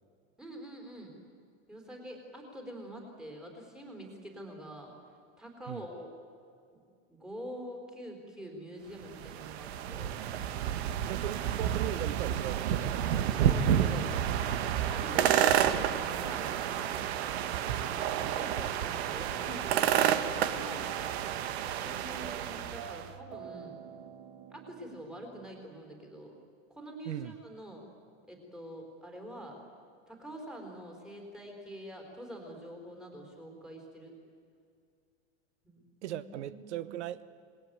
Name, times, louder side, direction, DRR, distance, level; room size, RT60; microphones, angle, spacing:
voice 1, 0.4-1.1 1.7-4.9 5.4-6.1 7.1-10.1 13.3-14.1 14.9-15.3 15.6-16.9 17.8-20.9 21.6-23.7 24.5-26.3 26.7-27.9 28.3-29.6 30.1-34.2 35.6-36.9, equal, ahead, 2 dB, 4.1 m, -45 dB
sound 1, 9.0-23.1, right 10 dB, 65° right, 1.6 m, -30 dB
voice 2, 11.1-13.0 15.1-15.7 27.1-27.3 36.0-37.2, right 12 dB, 85° right, 15 dB, 1.1 m, -38 dB
sound 2, 20.0-26.2, right 8 dB, 50° right, 1.9 m, -49 dB
27.0 x 20.0 x 9.2 m, 2.3 s
supercardioid pair, 165°, 34 cm